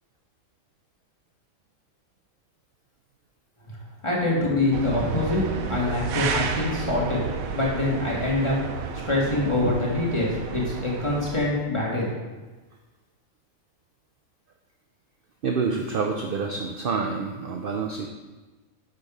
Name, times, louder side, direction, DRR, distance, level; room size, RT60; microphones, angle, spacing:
voice 1, 4.0-5.4 5.7-7.2 7.5-8.6 9.0-12.1, left 2 dB, 20° left, -5 dB, 1.8 m, -25 dB
sound 1, 4.7-11.5, right 6 dB, 90° right, 1.1 m, -32 dB
voice 2, 15.4-18.1, right 5 dB, 55° right, 2 dB, 0.7 m, -27 dB
6.8 x 5.3 x 5.0 m, 1.2 s
omnidirectional pair, 1.4 m